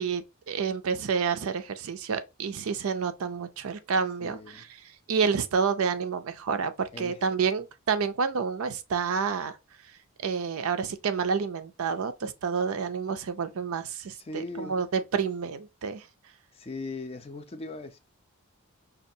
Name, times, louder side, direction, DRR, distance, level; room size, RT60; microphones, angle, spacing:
voice 1, 0.0-4.7 5.1-9.6 10.2-16.1, right 6 dB, 65° right, 0.4 m, -29 dB
voice 2, 4.2-4.6 6.9-7.2 14.2-14.8 16.5-18.0, left 2 dB, 25° left, 0.4 m, -39 dB
5.2 x 2.3 x 2.6 m
head